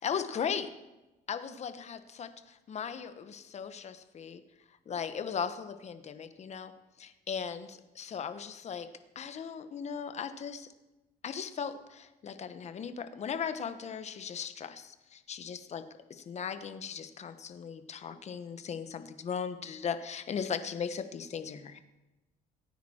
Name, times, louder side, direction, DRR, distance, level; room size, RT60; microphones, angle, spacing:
voice 1, 0.0-0.7 1.3-4.4 4.9-6.7 7.0-8.9 9.1-10.7 11.2-15.8 16.1-21.8, left 7 dB, 40° left, 10 dB, 1.0 m, -37 dB
17.0 x 9.3 x 4.3 m, 1.0 s
cardioid pair, 110°, 17 cm